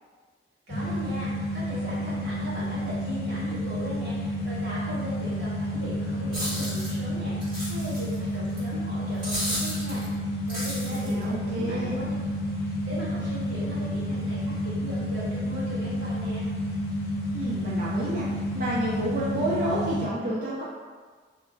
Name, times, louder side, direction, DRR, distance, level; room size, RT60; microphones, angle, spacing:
sound 1, 0.7-20.0, equal, 60° left, 0.6 m, -30 dB
voice 1, 0.7-10.0 10.5-12.1 12.6-16.4, right 1 dB, 80° right, -8 dB, 1.1 m, -39 dB
sound 2, 6.3-6.9 7.4-8.1 8.6-8.7 9.2-10.1 10.5-11.2, equal, 30° right, 1.2 m, -33 dB
voice 2, 10.9-12.0 17.3-20.6, right 1 dB, 50° right, -7 dB, 0.4 m, -30 dB
2.2 x 2.0 x 3.7 m, 1.5 s
head